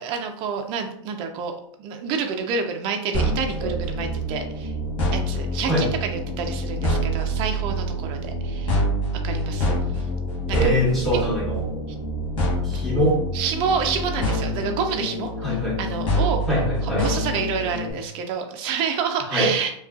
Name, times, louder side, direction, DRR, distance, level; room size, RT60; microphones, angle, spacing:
voice 1, 0.0-4.7 5.1-8.7 9.2-9.8 10.5-10.7 11.1-11.2 12.7-12.8 13.3-16.4 16.8-19.8, right 6 dB, 35° right, 4 dB, 0.3 m, -28 dB
sound 1, 3.1-17.9, equal, 30° left, 0.9 m, -26 dB
voice 2, 10.5-11.6 12.6-13.2 15.4-15.8 16.5-17.1 19.2-19.5, equal, ahead, -6 dB, 0.9 m, -23 dB
2.4 x 2.2 x 2.4 m, 0.69 s
hypercardioid pair, 125°, 16 cm